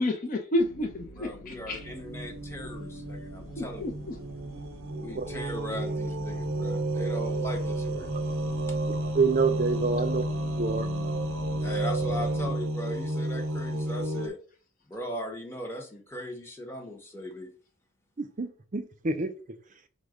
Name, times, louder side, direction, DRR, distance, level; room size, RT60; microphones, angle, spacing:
voice 1, 0.0-1.8 3.6-3.9, left 1 dB, 40° left, 0.5 m, -29 dB
sound 1, 0.6-12.5, left 1 dB, 85° left, 0.6 m, -45 dB
voice 2, 1.2-3.9 4.9-8.1 8.7-8.8 11.6-14.4 14.9-17.5, equal, 10° left, 0.8 m, -38 dB
sound 2, 1.7-14.3, right 1 dB, 75° right, 0.6 m, -31 dB
voice 3, 9.1-10.2 10.6-10.9 18.2-19.3, right 4 dB, 35° right, 0.5 m, -27 dB
5.2 x 2.1 x 4.8 m
head